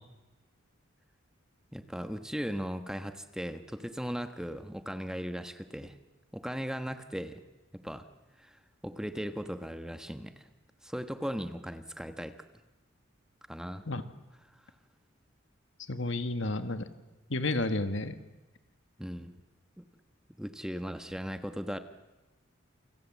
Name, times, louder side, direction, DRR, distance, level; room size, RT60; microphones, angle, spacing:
voice 1, 1.7-6.0 6.3-7.4 7.8-8.0 8.4-10.5 10.8-12.3 13.5-13.8 19.0-19.4 19.8-19.9 20.4-21.8, equal, 5° right, 8 dB, 1.2 m, -37 dB
voice 2, 15.9-16.9 17.3-18.2, left 2 dB, 65° left, 9 dB, 1.8 m, -31 dB
28.5 x 26.0 x 7.5 m, 1.1 s
head